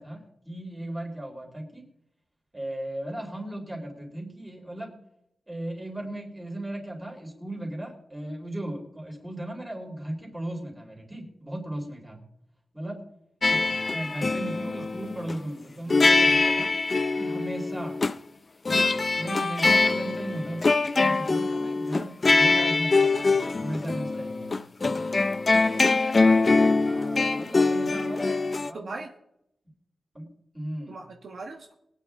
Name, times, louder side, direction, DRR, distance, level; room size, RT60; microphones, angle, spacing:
voice 1, 0.0-1.9 2.5-5.0 5.5-12.2 12.7-13.1 13.5-16.7 17.1-18.0 18.6-23.3 23.6-24.6 25.2-25.3 25.7-26.1 26.9-28.9 29.7-29.8 30.1-31.0, right 1 dB, 10° right, 0 dB, 3.5 m, -36 dB
sound 1, 13.4-15.4 15.9-18.1 18.7-28.7, left 3 dB, 35° left, 0.5 m, -23 dB
voice 2, 28.7-29.1 30.9-31.7, right 3 dB, 60° right, 2 dB, 1.2 m, -40 dB
22.0 x 9.0 x 3.6 m, 0.77 s
wide cardioid pair, 150°, 0 cm